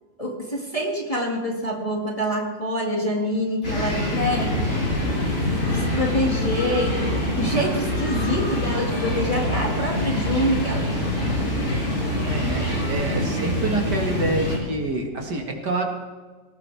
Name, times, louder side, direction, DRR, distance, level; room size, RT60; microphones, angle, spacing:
voice 1, 0.2-4.6 5.4-10.9 13.3-13.8, equal, 20° left, -1 dB, 2.1 m, -26 dB
sound 1, 3.6-14.6, left 1 dB, 60° left, 6.5 m, -25 dB
sound 2, 4.9-12.9, right 3 dB, 45° right, 6.6 m, -34 dB
voice 2, 12.3-15.8, right 3 dB, 60° right, 3 dB, 2.3 m, -27 dB
18.5 x 18.5 x 3.5 m, 1.4 s
omnidirectional pair, 2.1 m